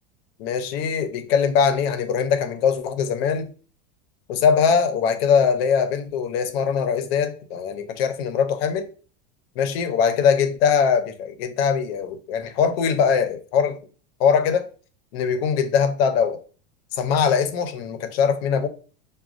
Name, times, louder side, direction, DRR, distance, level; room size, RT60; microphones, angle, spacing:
voice 1, 0.4-3.5 4.3-8.9 9.6-13.8 14.2-14.7 15.1-16.4 16.9-18.7, left 6 dB, 65° left, 0.7 m, -21 dB
6.0 x 2.3 x 2.5 m
supercardioid pair, 175°, 32 cm